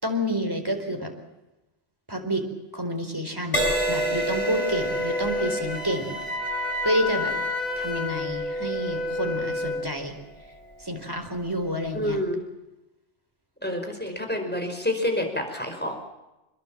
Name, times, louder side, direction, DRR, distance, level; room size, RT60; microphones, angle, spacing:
voice 1, 0.0-1.1 2.1-2.4 2.7-6.2 6.8-7.3 7.8-10.1 10.8-12.2, equal, 20° right, 4 dB, 4.3 m, -29 dB
Crash cymbal, 3.5-11.2 11.8-12.1, right 2 dB, 30° left, 5.1 m, -33 dB
Wind instrument woodwind instrument, 3.5-9.9, left 1 dB, 75° right, 2.8 m, -29 dB
voice 2, 11.9-12.4 13.6-16.0, left 1 dB, 10° left, 4 dB, 5.1 m, -28 dB
27.5 x 22.0 x 7.5 m, 0.99 s
omnidirectional pair, 1.2 m